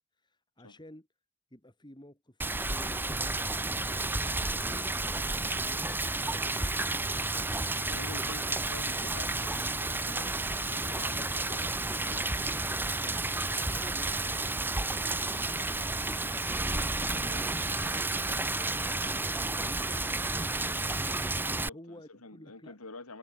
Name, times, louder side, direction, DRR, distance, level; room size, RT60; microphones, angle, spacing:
voice 1, 0.2-1.1 1.5-5.0 5.7-6.6 8.4-8.5 13.6-16.6 17.1-17.7 18.8-20.8 21.7-22.8, left 1 dB, 20° left, 6.0 m, -52 dB
Rain, 2.4-21.7, right 2 dB, 10° right, 1.1 m, -31 dB
voice 2, 7.9-12.5 17.0-17.5 21.5-23.2, left 2 dB, 85° left, 3.9 m, -48 dB
head